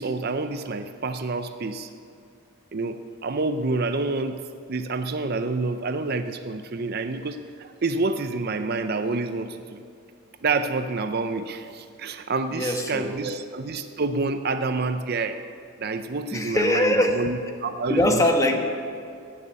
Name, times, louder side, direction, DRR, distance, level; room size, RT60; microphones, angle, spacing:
voice 1, 0.0-1.9 2.7-4.4 4.7-9.8 10.4-15.4 15.8-18.2, right 3 dB, 45° right, 9 dB, 0.5 m, -28 dB
voice 2, 12.5-13.2 16.3-17.2 17.9-18.6, left 1 dB, 15° left, 3 dB, 1.1 m, -22 dB
17.0 x 6.9 x 8.3 m, 2.4 s
head